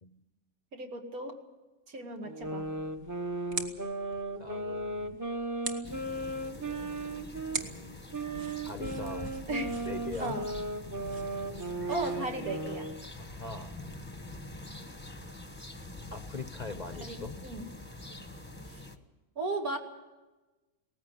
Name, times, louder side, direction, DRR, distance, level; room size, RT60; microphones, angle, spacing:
voice 1, 0.7-1.4 1.9-2.7 9.5-9.7 10.2-10.4 11.9-12.9 17.0-17.7 18.7-18.8 19.4-19.8, right 2 dB, 80° right, 3 dB, 2.6 m, -36 dB
sound 1, 2.2-7.6 8.1-13.0, right 2 dB, 15° right, 0.9 m, -36 dB
sound 2, 2.4-12.4, right 3 dB, 50° right, 1.7 m, -45 dB
voice 2, 4.4-5.2 7.5-8.0 8.6-9.3 9.8-10.4 13.2-13.7 16.1-17.4, left 3 dB, 35° left, 9 dB, 0.7 m, -41 dB
sound 3, 5.8-19.0, left 2 dB, 10° left, 0.9 m, -45 dB
18.5 x 15.0 x 9.7 m, 1.2 s
omnidirectional pair, 1.5 m